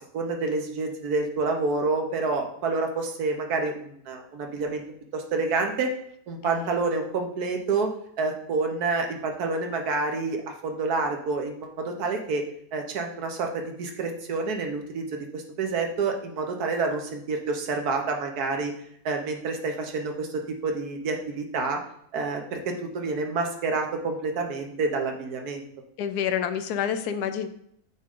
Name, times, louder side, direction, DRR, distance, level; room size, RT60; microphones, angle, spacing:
voice 1, 0.1-4.8 5.1-5.9 6.3-7.9 8.2-12.4 12.7-15.1 15.3-18.7 19.0-21.8 22.1-25.6, right 3 dB, 80° right, 3 dB, 1.5 m, -28 dB
voice 2, 6.4-6.8 26.0-27.5, left 8 dB, 85° left, 9 dB, 1.1 m, -28 dB
8.6 x 3.6 x 3.7 m, 0.69 s
omnidirectional pair, 1.6 m